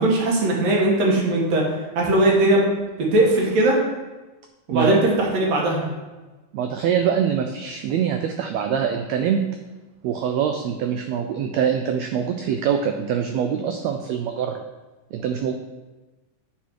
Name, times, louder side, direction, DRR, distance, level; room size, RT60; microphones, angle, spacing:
voice 1, 0.0-1.6 2.0-2.6 3.0-3.8 4.7-5.9, right 2 dB, 60° right, -2 dB, 2.5 m, -19 dB
voice 2, 4.7-5.0 6.5-9.4 10.0-14.6 15.1-15.5, right 8 dB, 85° right, 6 dB, 1.5 m, -24 dB
9.3 x 4.3 x 4.6 m, 1.2 s
omnidirectional pair, 3.6 m